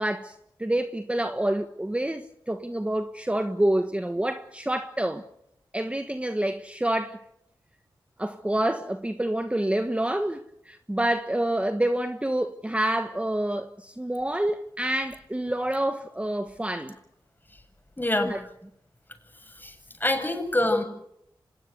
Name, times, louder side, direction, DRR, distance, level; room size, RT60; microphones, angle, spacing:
voice 1, 0.0-5.2 5.7-7.2 8.2-16.9 18.2-18.4, right 1 dB, 15° right, 1.5 m, -27 dB
voice 2, 18.0-18.4 19.5-20.8, left 1 dB, 20° left, 7.7 m, -26 dB
26.0 x 20.0 x 8.3 m
cardioid pair, 50°, 9 cm